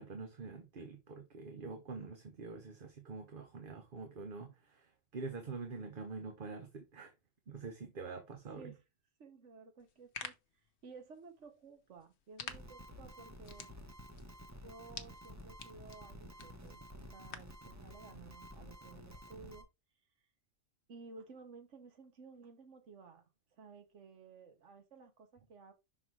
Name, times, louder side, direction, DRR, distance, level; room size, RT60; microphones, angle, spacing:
voice 1, 0.0-7.1 7.5-8.7, right 4 dB, 45° right, 0.9 m, -46 dB
voice 2, 9.2-10.3 10.8-13.7 14.6-19.7 20.9-23.2 23.6-25.7, right 4 dB, 65° right, 1.6 m, -55 dB
sound 1, 9.8-17.6, left 7 dB, 65° left, 1.0 m, -52 dB
sound 2, 12.5-19.6, equal, 15° right, 0.8 m, -52 dB
5.7 x 3.9 x 4.5 m
omnidirectional pair, 1.3 m